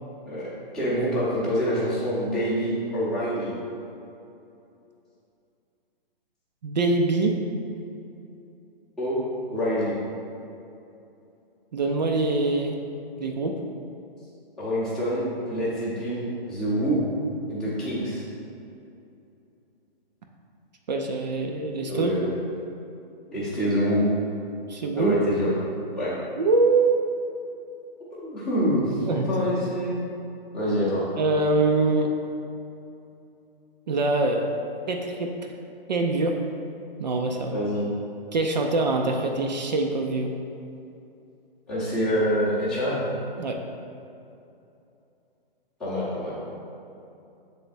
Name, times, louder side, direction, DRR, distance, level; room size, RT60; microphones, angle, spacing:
voice 1, 0.3-3.5 9.0-9.2 9.5-9.9 14.6-17.0 17.5-18.2 21.9-22.3 23.3-24.1 25.0-25.5 26.0-26.2 28.1-30.0 30.5-31.1 37.5-37.9 41.7-43.0 45.8-46.4, equal, ahead, -12 dB, 0.7 m, -26 dB
voice 2, 6.6-7.4 11.7-12.8 13.2-13.6 20.9-22.2 24.7-25.2 26.4-27.0 29.0-29.3 31.2-32.1 33.9-34.5 34.9-35.3 35.9-36.4 37.0-37.5 38.3-40.3 43.4-43.6, right 3 dB, 45° right, 2 dB, 0.4 m, -24 dB
7.4 x 3.4 x 4.1 m, 2.7 s
hypercardioid pair, 165°, 30 cm